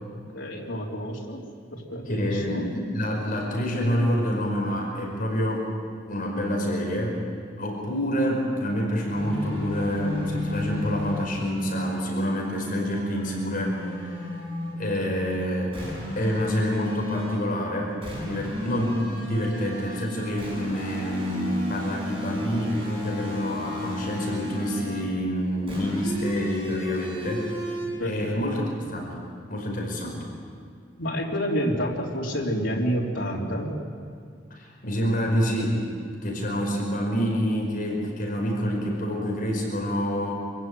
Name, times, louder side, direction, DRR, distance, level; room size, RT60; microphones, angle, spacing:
voice 1, 0.3-1.4 1.7-2.6 28.0-28.3 31.0-33.7, equal, 90° left, -3 dB, 3.5 m, -28 dB
voice 2, 2.1-5.7 6.1-7.2 7.6-14.3 14.7-15.8 16.2-27.7 28.0-29.1 29.5-30.2 34.5-35.8 36.2-40.3, equal, 50° left, -1 dB, 5.2 m, -27 dB
sound 1, 9.1-14.8 15.7-17.5 18.0-25.1 25.7-27.9, left 1 dB, 30° right, 7.5 m, -33 dB
26.5 x 15.5 x 9.4 m, 2.3 s
head